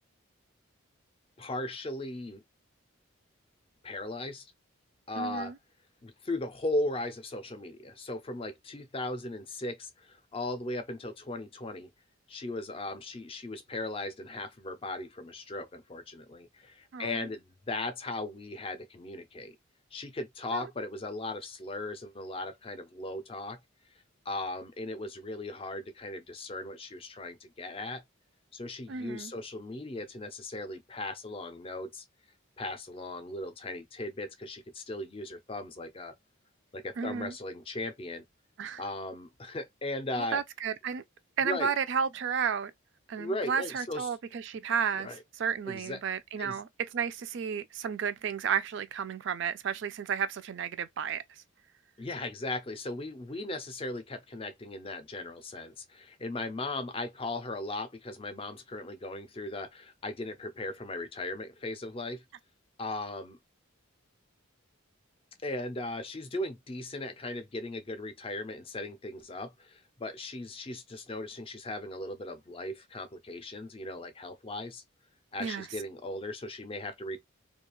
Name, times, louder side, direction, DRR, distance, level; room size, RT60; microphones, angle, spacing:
voice 1, 1.4-2.4 3.8-4.5 5.1-5.5 6.0-11.9 12.3-19.6 19.9-23.6 24.3-28.0 28.5-32.0 32.6-36.2 36.7-38.2 38.8-40.4 41.4-41.7 43.2-44.1 45.0-45.2 45.7-46.0 46.4-46.6 52.0-62.2 62.8-63.4 65.4-74.8 75.3-77.2, left 2 dB, 25° left, 0.4 m, -37 dB
voice 2, 5.2-5.6 16.9-17.2 20.5-20.7 28.9-29.3 37.0-37.3 38.6-38.8 40.2-41.0 41.4-42.7 43.1-45.1 45.4-51.2 75.4-75.7, right 7 dB, 55° right, 0.3 m, -32 dB
2.4 x 2.3 x 2.9 m
head